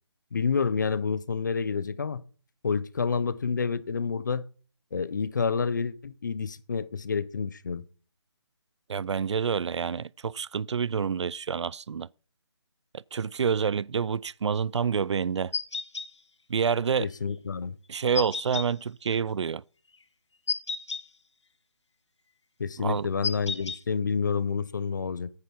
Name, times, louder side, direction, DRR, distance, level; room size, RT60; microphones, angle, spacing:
voice 1, 0.3-2.2 2.6-4.4 4.9-7.8 17.0-17.8 22.6-25.3, left 5 dB, 40° left, 0.6 m, -29 dB
voice 2, 8.9-12.1 12.9-15.5 16.5-17.1 17.9-19.6 22.8-23.1, right 6 dB, 80° right, 0.4 m, -28 dB
sound 1, 15.5-16.1 18.1-18.7 20.5-21.0 23.2-23.8, left 4 dB, 85° left, 1.1 m, -31 dB
9.7 x 9.5 x 4.5 m
hypercardioid pair, 170°, 15 cm